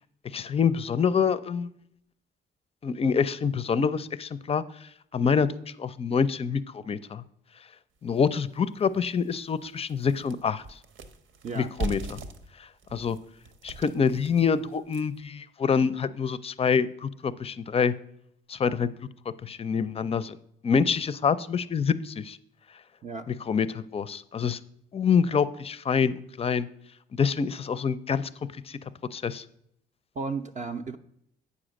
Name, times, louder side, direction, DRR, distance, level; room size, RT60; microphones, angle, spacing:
voice 1, 0.3-1.7 2.8-5.5 5.8-7.2 8.0-10.8 11.5-12.2 12.6-13.2 13.6-17.9 18.5-18.9 19.4-20.4 20.6-22.4 23.3-24.6 24.9-26.7 27.1-28.3 28.7-28.8 29.1-29.4, left 6 dB, 30° left, 16 dB, 0.4 m, -26 dB
sound 1, 8.2-8.3 8.8-8.9 9.2-15.3, right 3 dB, 80° right, 0.9 m, -40 dB
voice 2, 30.2-31.0, right 4 dB, 35° right, 4 dB, 0.5 m, -33 dB
8.4 x 5.0 x 6.3 m, 0.74 s
cardioid pair, 90°, 20 cm